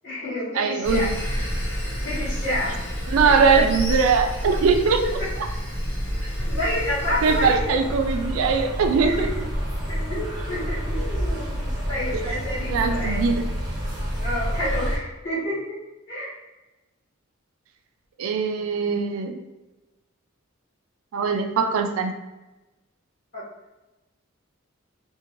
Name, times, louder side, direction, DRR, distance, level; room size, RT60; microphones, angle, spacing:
voice 1, 0.0-1.0 2.0-2.8 3.2-3.6 4.8-5.3 6.5-7.7 9.0-9.3 9.9-13.2 14.2-15.8 16.1-16.3 23.3-23.4, left 1 dB, 50° left, -12 dB, 1.5 m, -29 dB
voice 2, 0.6-1.1 3.1-5.0 7.2-9.3 12.7-13.5 18.2-19.4 21.1-22.1, right 5 dB, 85° right, 6 dB, 0.3 m, -21 dB
Sawing, 0.8-7.6, equal, 75° left, 0.8 m, -28 dB
sound 1, 7.2-15.0, equal, 20° right, 0.7 m, -28 dB
2.6 x 2.2 x 2.9 m, 1.1 s
head